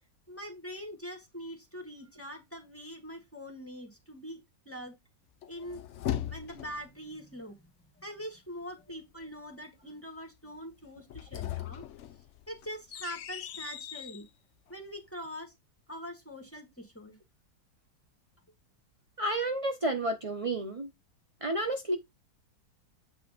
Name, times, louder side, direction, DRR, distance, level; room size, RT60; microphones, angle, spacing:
voice 1, 0.3-4.9 5.5-5.8 6.2-7.6 8.0-11.9 12.5-14.2 14.7-15.5 15.9-17.2, equal, 10° left, 1.7 m, -43 dB
sound 1, 5.4-6.9 11.0-14.2, left 11 dB, 85° left, 0.6 m, -38 dB
voice 2, 19.2-20.9 21.4-22.0, right 1 dB, 40° right, 0.5 m, -31 dB
8.5 x 3.1 x 5.0 m
omnidirectional pair, 1.9 m